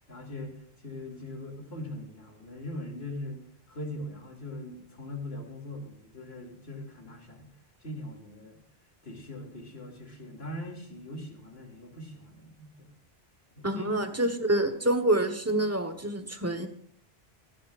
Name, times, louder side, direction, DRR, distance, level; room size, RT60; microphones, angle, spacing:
voice 1, 0.1-7.5 7.8-8.6 9.0-12.9 13.6-13.9, left 1 dB, 75° left, 1 dB, 3.1 m, -41 dB
voice 2, 13.6-16.7, right 1 dB, 15° right, 7 dB, 1.2 m, -27 dB
26.0 x 10.5 x 2.5 m, 0.62 s
omnidirectional pair, 1.1 m